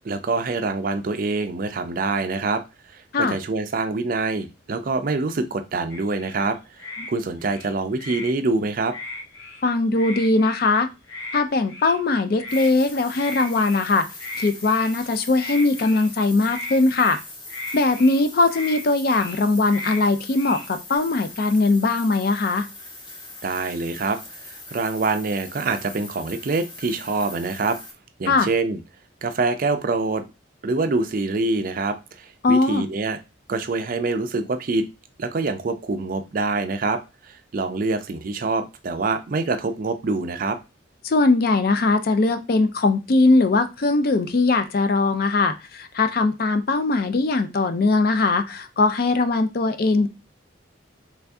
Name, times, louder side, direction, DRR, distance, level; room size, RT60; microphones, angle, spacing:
voice 1, 0.0-2.6 2.9-8.9 23.4-27.8 28.2-28.8 29.2-30.2 30.6-33.2 33.5-34.9 35.2-40.6, right 3 dB, 45° right, 8 dB, 0.4 m, -25 dB
sound 1, 5.9-6.4 6.8-7.1 7.4-8.3 8.9-9.6 9.9-10.7 11.1-11.4 11.7-12.0 12.4-12.7 13.1-13.8 14.2-15.0 15.3-16.1 16.4-17.2 17.5-18.2 18.5-18.8 19.1-19.4 19.7-20.0 20.3-21.0, left 2 dB, 65° left, 1.0 m, -36 dB
voice 2, 9.6-10.9 11.3-14.1 14.4-17.2 17.7-22.7 28.3-28.5 32.4-32.9 41.0-50.1, left 3 dB, 50° left, 9 dB, 0.4 m, -20 dB
sound 2, 12.5-27.9, left 2 dB, 20° left, 0.8 m, -41 dB
3.2 x 2.6 x 3.4 m, 0.27 s
head